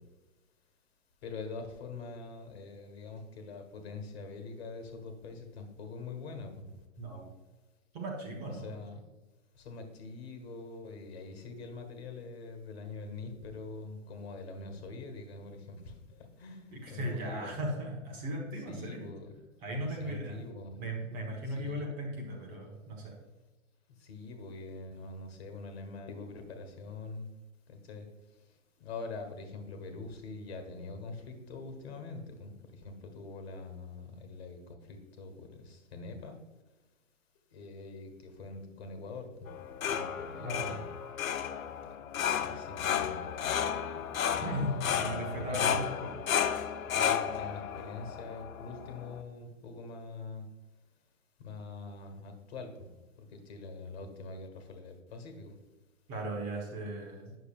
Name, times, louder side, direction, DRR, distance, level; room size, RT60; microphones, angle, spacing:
voice 1, 1.2-6.8 8.6-9.0 9.5-17.5 18.7-19.3 19.8-20.8 21.5-21.9 24.0-27.3 27.7-28.1 28.8-32.5 32.8-36.4 37.5-39.5 39.8-40.8 42.4-43.2 44.3-45.8 46.9-50.4 51.4-52.7 53.3-55.5, left 3 dB, 50° left, 5 dB, 1.6 m, -44 dB
voice 2, 7.0-7.3 7.9-8.7 16.7-19.1 19.6-20.3 20.8-23.1 40.4-40.8 44.4-46.2 56.1-57.3, right 1 dB, 20° right, 0 dB, 1.1 m, -37 dB
sound 1, 39.5-49.2, left 8 dB, 85° left, 0.8 m, -33 dB
9.0 x 6.7 x 2.4 m, 1.2 s
hypercardioid pair, 160°, 40 cm